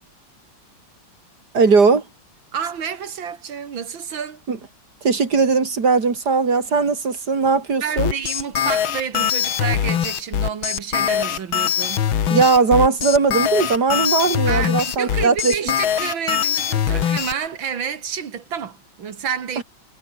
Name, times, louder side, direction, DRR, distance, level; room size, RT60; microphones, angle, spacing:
voice 1, 1.5-2.0 4.5-4.6 5.0-8.1 12.3-15.5 19.6-19.7, right 4 dB, 50° right, 3.1 m, -18 dB
voice 2, 2.5-4.4 7.8-12.1 14.5-19.6, right 7 dB, 70° right, 2.6 m, -29 dB
sound 1, 8.0-17.3, left 9 dB, 80° left, 2.3 m, -22 dB
omnidirectional pair, 2.2 m